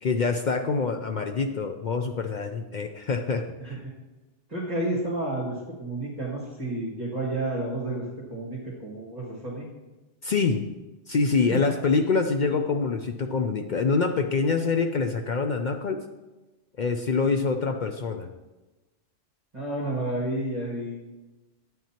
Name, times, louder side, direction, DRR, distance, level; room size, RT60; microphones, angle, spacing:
voice 1, 0.0-3.8 10.2-10.6 11.1-16.0 16.8-18.3, left 4 dB, 60° left, 5 dB, 0.5 m, -25 dB
voice 2, 3.6-3.9 4.5-8.0 8.3-9.7 11.5-11.8 19.5-21.0, right 2 dB, 35° right, -6 dB, 1.9 m, -31 dB
9.1 x 9.0 x 2.9 m, 1.1 s
omnidirectional pair, 1.3 m